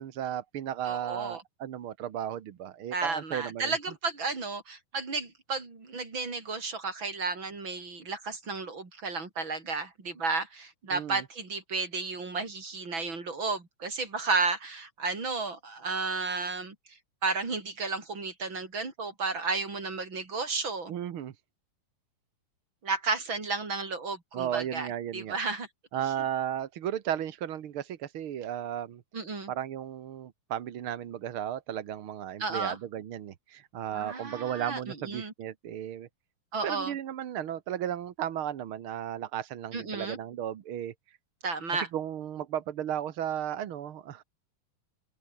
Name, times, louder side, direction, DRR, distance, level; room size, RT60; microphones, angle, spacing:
voice 1, 0.0-3.7 10.9-11.2 20.9-21.3 24.3-25.4 25.9-29.0 29.5-36.1 36.6-40.9 41.9-44.2, right 10 dB, 60° right, 1.5 m, -34 dB
voice 2, 0.9-1.4 2.9-20.9 22.8-24.9 25.1-25.7 29.1-29.5 32.4-32.8 33.9-35.3 36.5-36.9 39.7-40.2 41.4-41.9, right 4 dB, 35° right, 5.1 m, -33 dB
omnidirectional pair, 3.9 m